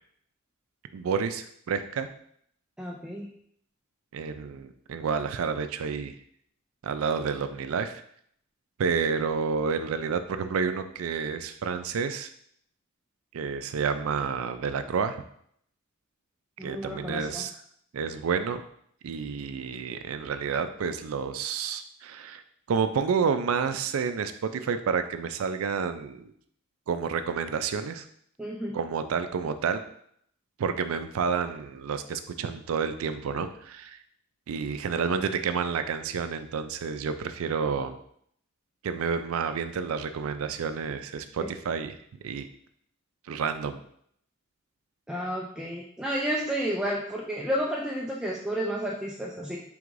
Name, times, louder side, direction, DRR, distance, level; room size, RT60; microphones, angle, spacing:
voice 1, 0.9-2.1 4.1-6.2 6.8-8.0 8.8-12.3 13.3-15.2 16.6-17.5 17.9-18.7 19.0-22.4 22.7-26.3 26.9-28.1 28.7-29.8 30.6-34.0 34.5-38.0 38.8-42.0 42.2-42.5 43.3-43.8, right 6 dB, 75° right, 10 dB, 0.4 m, -29 dB
voice 2, 2.8-3.3 16.6-17.4 28.4-28.8 41.4-41.5 45.1-49.6, equal, 5° right, -3 dB, 0.3 m, -31 dB
4.6 x 3.5 x 2.5 m, 0.67 s
head